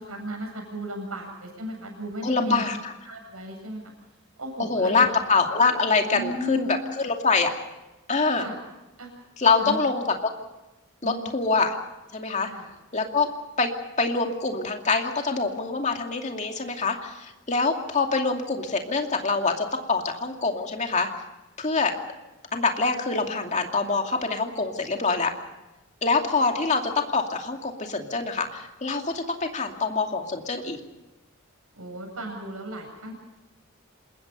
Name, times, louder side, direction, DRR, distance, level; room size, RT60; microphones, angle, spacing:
voice 1, 0.0-2.7 3.0-3.8 4.4-5.1 6.1-6.8 8.4-8.6 9.0-9.1 9.6-9.8 11.0-11.3 12.5-12.7 31.7-33.1, right 1 dB, 85° right, 2 dB, 7.9 m, -35 dB
voice 2, 2.2-2.9 4.6-7.5 8.1-8.4 9.4-10.0 11.0-11.8 12.1-12.5 12.9-13.3 13.6-13.7 14.0-21.1 21.6-21.9 22.5-25.3 26.0-30.8, left 4 dB, 35° left, 3 dB, 2.5 m, -25 dB
27.5 x 21.0 x 5.5 m, 1.0 s
head